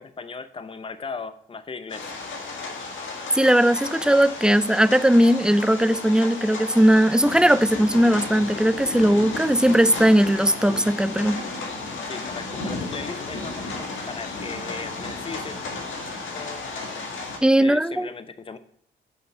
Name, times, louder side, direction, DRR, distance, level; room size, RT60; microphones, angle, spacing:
voice 1, 0.0-2.1 12.1-15.6 16.3-16.6 17.6-18.6, left 4 dB, 25° left, 0.7 m, -37 dB
sound 1, 1.9-17.4, left 3 dB, 75° left, 1.8 m, -33 dB
voice 2, 3.3-11.4 17.4-18.1, right 1 dB, 5° right, 0.4 m, -18 dB
8.1 x 5.3 x 4.2 m
supercardioid pair, 65°, 20 cm